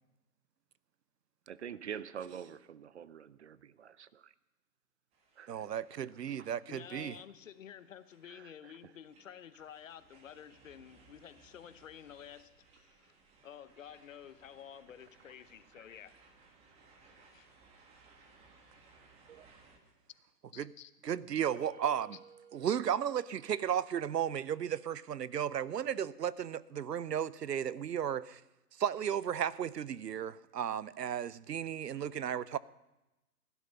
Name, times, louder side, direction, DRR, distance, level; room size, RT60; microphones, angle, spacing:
voice 1, 1.5-4.3 5.4-5.7 6.4-6.8 8.2-8.7 15.8-15.9 19.3-19.5, right 8 dB, 45° right, 0.6 m, -46 dB
sound 1, 5.1-19.8, right 4 dB, 15° right, 1.3 m, -64 dB
voice 2, 5.5-7.2 20.6-20.7 21.0-22.2 22.5-28.4 28.8-32.6, right 9 dB, 85° right, 0.7 m, -34 dB
voice 3, 6.7-13.1 13.4-16.1 17.3-17.5 20.5-20.9, left 9 dB, 55° left, 0.9 m, -51 dB
sound 2, 21.5-24.4, right 6 dB, 60° right, 2.7 m, -59 dB
16.5 x 11.0 x 5.6 m
hypercardioid pair, 145°, 48 cm